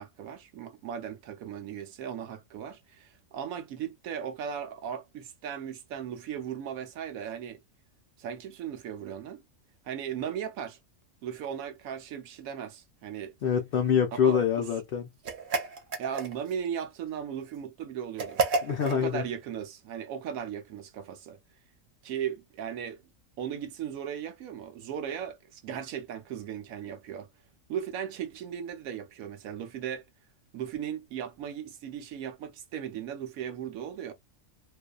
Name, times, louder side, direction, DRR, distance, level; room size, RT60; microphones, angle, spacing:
voice 1, 0.0-7.6 8.2-9.4 9.8-10.8 11.2-13.3 14.2-14.4 16.0-18.5 18.9-21.4 22.0-23.0 23.4-27.3 27.7-30.0 30.5-34.1, right 8 dB, 85° right, 1.1 m, -37 dB
voice 2, 13.4-15.1 18.6-19.3, left 8 dB, 65° left, 0.5 m, -25 dB
sound 1, 15.2-16.6 18.2-19.0, right 4 dB, 65° right, 0.5 m, -30 dB
2.6 x 2.3 x 2.2 m
omnidirectional pair, 1.4 m